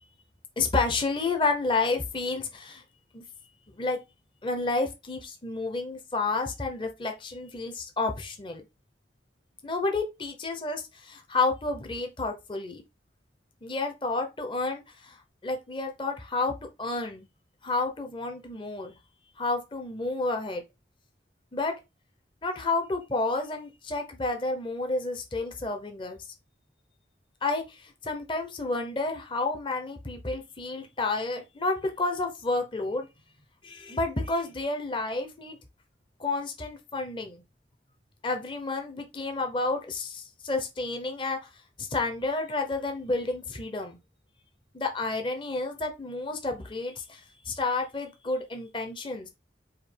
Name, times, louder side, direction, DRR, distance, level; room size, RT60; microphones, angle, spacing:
voice 1, 0.6-2.8 3.1-3.2 3.8-4.0 4.4-8.6 9.6-12.8 13.6-15.2 15.4-17.3 17.6-19.0 19.4-20.6 21.5-21.7 22.4-26.2 27.4-33.1 33.6-35.6 36.2-37.4 38.2-41.5 41.8-44.0 44.7-49.3, left 3 dB, 25° left, 0.7 m, -30 dB
5.1 x 2.3 x 4.4 m
head